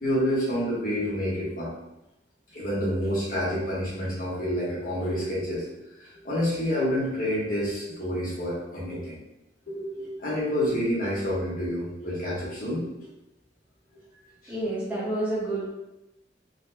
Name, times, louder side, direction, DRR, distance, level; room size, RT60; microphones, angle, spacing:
voice 1, 0.0-1.7 2.5-5.8 6.0-9.2 9.7-12.8 14.4-14.5, equal, 50° left, -7 dB, 1.1 m, -28 dB
voice 2, 14.5-15.7, right 1 dB, 10° right, -8 dB, 0.9 m, -29 dB
3.9 x 2.1 x 2.7 m, 0.92 s
head